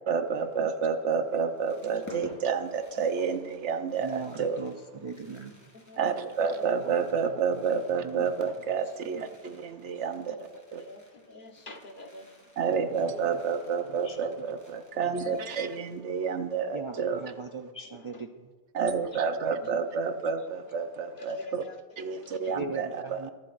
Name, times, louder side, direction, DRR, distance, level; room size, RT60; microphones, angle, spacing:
voice 1, 0.1-4.7 6.0-10.3 10.7-10.8 12.6-17.3 18.7-21.6 22.0-23.3, right 6 dB, 85° right, 9 dB, 1.1 m, -29 dB
Fireworks, 1.2-16.4 16.7-16.8 17.0-17.3, equal, 15° left, 3.6 m, -55 dB
voice 2, 4.0-4.7 5.0-5.6 6.8-6.9 7.3-7.6 8.0-8.3 9.1-9.2 13.1-13.2 13.9-14.2 16.7-18.5 22.5-23.3, right 4 dB, 35° right, 5 dB, 0.5 m, -39 dB
voice 3, 10.3-12.4 14.9-15.5 17.0-17.1 17.8-18.2 19.1-19.3 21.2-21.8 22.2-22.8, left 2 dB, 50° left, 4 dB, 1.3 m, -46 dB
22.0 x 12.0 x 2.5 m, 1.4 s
omnidirectional pair, 1.2 m